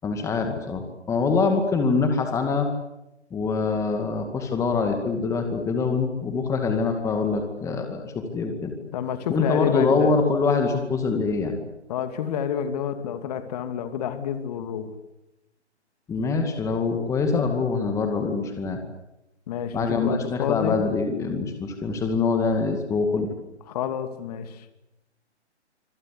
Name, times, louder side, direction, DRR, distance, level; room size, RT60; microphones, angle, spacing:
voice 1, 0.0-2.7 3.3-8.7 9.3-11.5 16.1-18.8 19.7-23.3, left 4 dB, 10° left, 2.2 m, -24 dB
voice 2, 8.8-10.1 11.9-14.9 19.5-20.8 23.7-24.7, left 8 dB, 35° left, 2.7 m, -29 dB
26.5 x 25.5 x 8.4 m
figure-of-eight pair, 140°, 35 cm